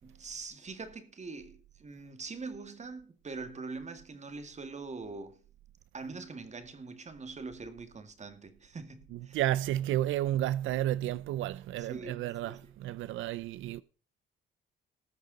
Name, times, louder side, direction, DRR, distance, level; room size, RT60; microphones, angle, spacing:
voice 1, 0.0-5.4 5.9-9.4 11.8-12.6, right 4 dB, 35° right, 2.1 m, -43 dB
voice 2, 9.1-13.8, right 13 dB, 85° right, 0.5 m, -32 dB
19.5 x 6.5 x 4.0 m
cardioid pair, 90°, 20 cm